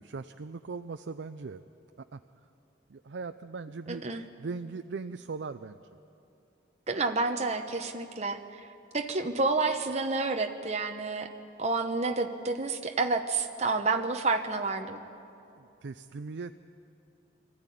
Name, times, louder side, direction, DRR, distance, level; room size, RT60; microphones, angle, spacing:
voice 1, 0.0-1.6 2.1-2.2 2.9-4.0 4.4-5.8 15.6-16.5, right 4 dB, 65° right, 9 dB, 0.5 m, -39 dB
voice 2, 3.9-4.2 6.9-8.4 8.9-11.3 11.6-15.0, right 3 dB, 35° right, 5 dB, 0.9 m, -29 dB
22.5 x 14.0 x 10.0 m, 2.7 s
head